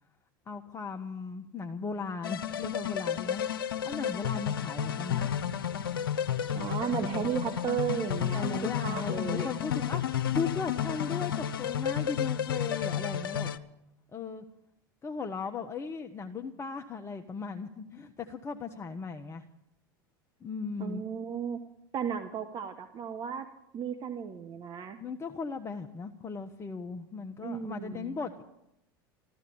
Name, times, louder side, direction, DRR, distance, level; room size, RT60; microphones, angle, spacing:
voice 1, 0.5-5.3 8.3-13.5 14.1-14.4 15.0-19.4 20.4-21.0 25.0-28.4, left 5 dB, 25° left, 4 dB, 1.0 m, -37 dB
sound 1, 2.2-13.6, left 9 dB, 85° left, 0.7 m, -32 dB
voice 2, 6.5-9.5 20.8-21.6 21.9-23.5 23.7-25.0 27.4-28.2, right 8 dB, 40° right, 7 dB, 1.2 m, -34 dB
14.0 x 13.5 x 7.0 m, 0.83 s
hypercardioid pair, 90°, 12 cm